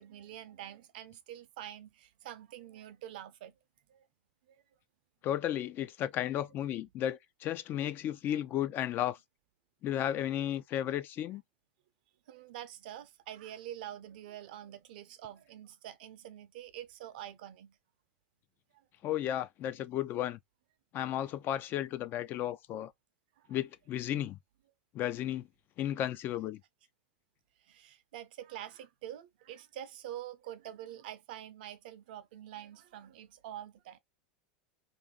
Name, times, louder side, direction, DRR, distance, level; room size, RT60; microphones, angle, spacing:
voice 1, 0.0-3.5 3.9-4.0 12.3-17.7 27.7-34.0, right 12 dB, 65° right, 0.6 m, -46 dB
voice 2, 5.2-9.2 9.8-11.4 19.0-20.4 20.9-22.9 23.5-24.4 24.9-25.5 25.8-26.6, left 11 dB, 40° left, 0.4 m, -34 dB
2.7 x 2.6 x 3.6 m
hypercardioid pair, 95°, 5 cm